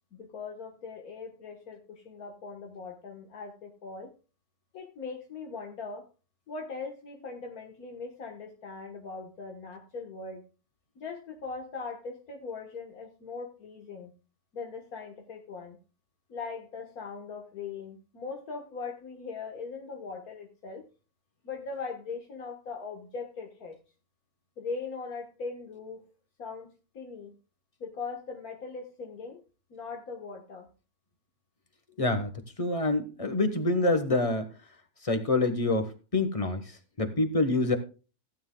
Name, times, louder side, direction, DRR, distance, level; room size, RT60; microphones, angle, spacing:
voice 1, 0.1-4.1 4.7-6.0 6.5-10.4 11.0-14.1 14.5-15.8 16.3-20.9 21.4-23.8 24.6-26.1 26.4-27.3 27.8-29.4 29.7-30.7, left 4 dB, 90° left, 1 dB, 1.9 m, -40 dB
voice 2, 32.0-32.3 32.6-34.5 35.0-36.6 37.0-37.8, left 2 dB, 25° left, 8 dB, 1.2 m, -26 dB
16.5 x 9.3 x 2.3 m, 0.33 s
omnidirectional pair, 1.5 m